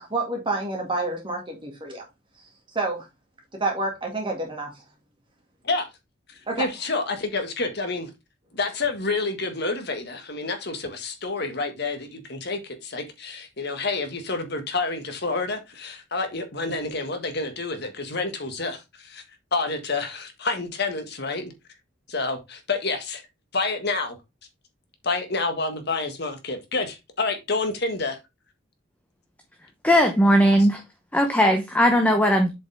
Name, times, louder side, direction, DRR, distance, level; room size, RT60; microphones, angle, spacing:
voice 1, 0.0-2.0 2.7-3.1 3.6-4.7 6.5-6.7, right 2 dB, 25° right, 2.1 m, -28 dB
voice 2, 6.6-8.1 8.5-19.2 19.5-21.5 22.1-23.2 23.5-24.2 25.0-28.2 30.6-30.7, left 3 dB, 55° left, 1.7 m, -28 dB
voice 3, 29.8-30.8 31.1-32.5, equal, 10° left, 0.8 m, -18 dB
7.7 x 5.2 x 3.5 m
head